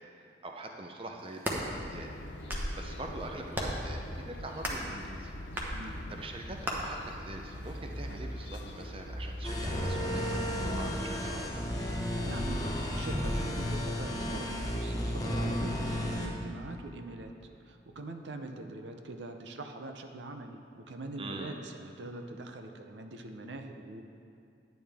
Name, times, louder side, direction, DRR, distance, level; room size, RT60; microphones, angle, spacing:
voice 1, 0.0-2.1 2.8-5.3 5.8-11.7 21.2-21.6, right 2 dB, 30° right, 2 dB, 0.6 m, -44 dB
sound 1, 1.2-1.6 2.3-2.8 3.5-3.9 4.6-4.9 5.6-5.7 6.6-6.8, equal, 10° right, 0.9 m, -34 dB
sound 2, 1.5-13.8, left 1 dB, 75° left, 0.7 m, -42 dB
voice 2, 5.7-6.0 12.2-12.6 12.9-17.3 17.7-24.0, right 2 dB, 80° right, 6 dB, 0.6 m, -43 dB
sound 3, 9.4-16.3, equal, 20° left, 0.8 m, -33 dB
10.5 x 9.2 x 3.5 m, 2.5 s
head